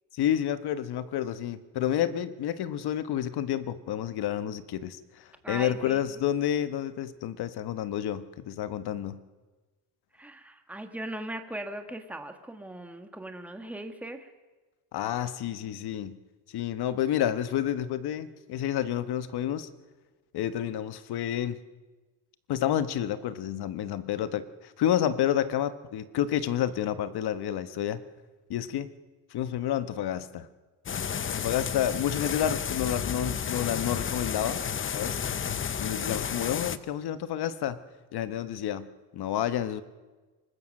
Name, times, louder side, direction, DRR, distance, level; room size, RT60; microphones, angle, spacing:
voice 1, 0.1-9.2 14.9-16.2 16.5-19.7 20.3-21.6 22.5-28.0 28.5-28.9 29.3-30.5 31.3-34.6 34.9-35.2 35.8-37.8 38.1-38.9 39.1-39.8, left 10 dB, 65° left, 12 dB, 1.3 m, -29 dB
voice 2, 5.4-6.0 10.1-14.3, right 1 dB, 5° right, 6 dB, 1.6 m, -39 dB
sound 1, 30.9-36.8, left 7 dB, 30° left, 0.8 m, -32 dB
24.0 x 20.0 x 6.5 m, 1.3 s
cardioid pair, 130°, 42 cm